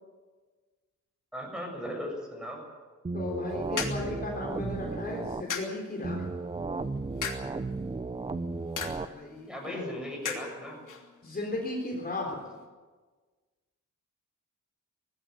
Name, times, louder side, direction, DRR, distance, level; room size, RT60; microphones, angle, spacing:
voice 1, 1.3-2.6 9.5-10.8 11.3-11.4, equal, ahead, 0 dB, 7.1 m, -37 dB
sound 1, 3.0-5.4 6.0-9.0, right 3 dB, 20° right, 0.7 m, -34 dB
voice 2, 3.1-6.3 9.0-9.8 11.2-12.4, left 2 dB, 30° left, -1 dB, 3.9 m, -35 dB
sound 2, 3.2-12.7, left 6 dB, 80° left, 3.1 m, -42 dB
19.0 x 15.5 x 9.5 m, 1.4 s
wide cardioid pair, 125°, 31 cm